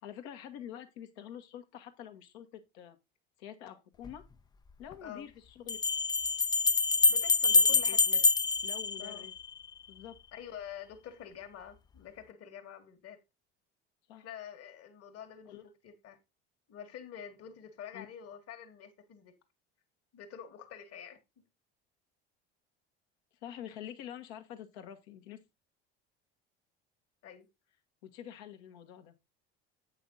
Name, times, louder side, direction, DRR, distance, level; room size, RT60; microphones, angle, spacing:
voice 1, 0.0-3.0 3.4-4.2 4.8-5.8 7.5-7.6 7.9-8.2 8.6-9.3 9.9-10.1 14.1-14.3 15.5-15.6 17.9-18.0 23.4-25.4 28.0-29.2, left 10 dB, 75° left, 1.5 m, -46 dB
sound 1, 4.1-4.2 5.7-9.7, left 4 dB, 15° left, 0.3 m, -26 dB
voice 2, 7.1-8.3 9.0-9.3 10.3-13.2 14.2-16.2 16.7-19.3 20.1-21.2 27.2-27.5, left 9 dB, 50° left, 1.8 m, -47 dB
8.4 x 5.8 x 3.9 m
hypercardioid pair, 70°, 33 cm